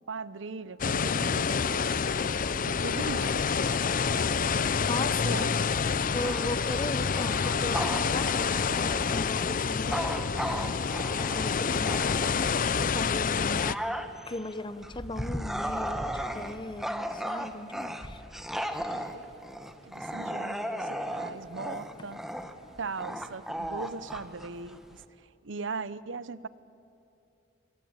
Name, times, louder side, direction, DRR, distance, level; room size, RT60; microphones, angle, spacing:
voice 1, 0.1-1.9 2.7-3.4 5.0-5.5 18.9-19.2 19.8-22.2 22.8-25.0 25.4-26.5, right 4 dB, 70° right, 17 dB, 0.8 m, -39 dB
sound 1, 0.8-13.7, left 5 dB, 45° left, 0.6 m, -28 dB
voice 2, 4.9-5.5 6.1-13.9 14.3-18.2, left 2 dB, 25° left, 14 dB, 0.9 m, -38 dB
Bark / Growling, 6.1-12.7 13.2-25.0, equal, ahead, 1.4 m, -36 dB
26.5 x 22.5 x 9.0 m, 2.8 s
head